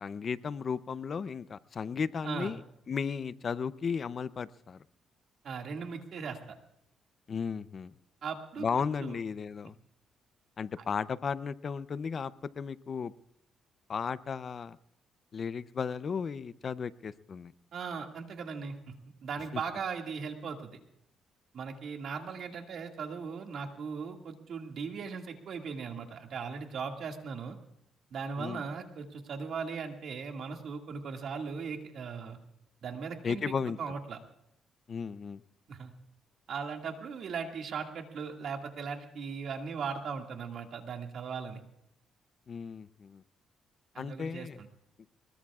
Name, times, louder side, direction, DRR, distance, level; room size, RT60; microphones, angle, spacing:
voice 1, 0.0-4.8 7.3-8.0 8.6-9.8 10.6-13.1 13.9-14.8 15.3-17.5 19.5-19.6 28.4-28.6 33.2-33.8 34.9-35.4 42.5-43.2 44.0-44.6, left 6 dB, 45° left, 16 dB, 0.6 m, -35 dB
voice 2, 5.4-6.4 8.2-8.6 9.0-9.2 17.7-18.8 19.2-20.8 21.5-27.6 28.1-32.4 32.8-33.5 33.8-34.2 35.7-35.9 36.5-41.6 43.9-44.5, right 5 dB, 65° right, 3 dB, 2.1 m, -38 dB
23.0 x 20.5 x 2.4 m, 0.79 s
cardioid pair, 90°, 0 cm